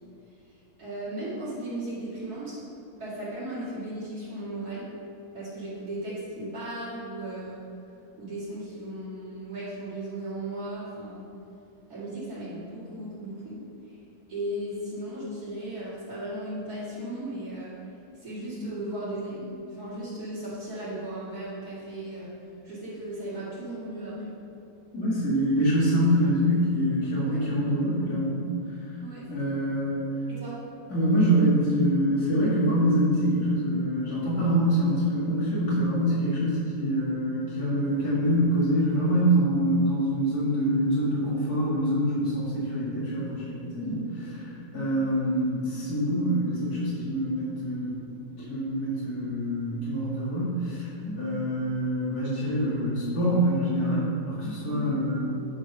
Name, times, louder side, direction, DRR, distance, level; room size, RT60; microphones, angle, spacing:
voice 1, 0.8-2.6 3.0-4.8 5.3-7.6 8.2-11.2 11.9-13.6 13.8-14.0 14.3-17.7 18.1-22.3 22.6-24.3 27.2-27.4 29.0-29.5 30.3-30.6 43.8-44.0 44.7-44.9 54.7-55.0, right 1 dB, 70° right, -13 dB, 2.8 m, -36 dB
voice 2, 24.9-28.9 29.3-30.0 30.9-44.0 44.7-48.0 48.4-55.2, equal, 85° left, -9 dB, 2.5 m, -25 dB
9.6 x 5.0 x 5.4 m, 2.8 s
omnidirectional pair, 1.6 m